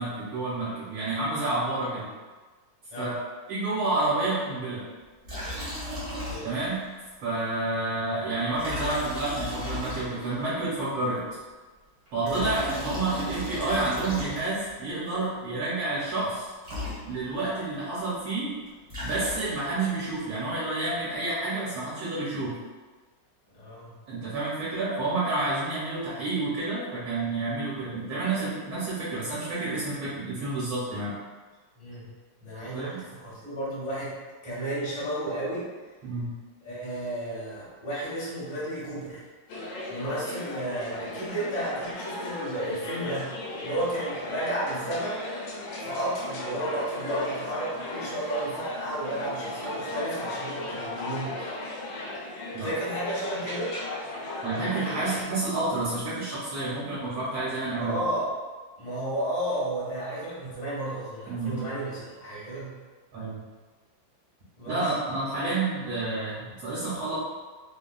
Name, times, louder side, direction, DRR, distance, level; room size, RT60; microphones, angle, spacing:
voice 1, 0.0-2.1 3.0-3.1 3.5-4.8 6.4-6.8 7.2-11.2 12.1-16.5 17.0-18.5 19.0-22.5 24.1-31.1 32.7-33.0 36.0-36.3 49.6-50.1 50.6-50.7 52.5-52.7 54.4-58.0 61.3-61.7 63.1-63.4 64.6-67.2, right 2 dB, 80° right, -10 dB, 1.9 m, -29 dB
Liquid, 5.2-6.8 7.1-7.2 8.5-10.4 12.1-14.7 16.3-16.4 16.6-17.5 18.6-19.7, left 1 dB, 45° right, 1.2 m, -35 dB
voice 2, 23.5-23.9 31.8-32.1 32.4-34.1 34.4-35.6 36.6-39.2 39.9-43.3 43.6-45.2 45.8-51.3 52.6-53.7 57.8-58.3 58.8-62.7 64.6-64.8, right 1 dB, 30° left, -8 dB, 0.7 m, -32 dB
sound 1, 39.5-55.2, left 2 dB, 75° left, 1.2 m, -37 dB
3.6 x 2.3 x 2.2 m, 1.3 s
omnidirectional pair, 2.2 m